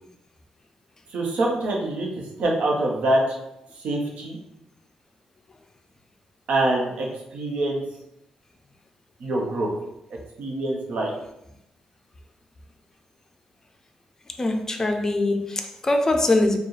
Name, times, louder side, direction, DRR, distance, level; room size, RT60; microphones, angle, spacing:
voice 1, 1.1-3.2 3.8-4.4 6.5-7.1 7.3-7.8 9.2-9.7 10.4-11.1, right 2 dB, 85° right, -1 dB, 1.0 m, -24 dB
voice 2, 14.4-16.6, left 2 dB, 25° left, 4 dB, 0.4 m, -22 dB
4.6 x 2.3 x 3.2 m, 0.85 s
wide cardioid pair, 135°, 2 cm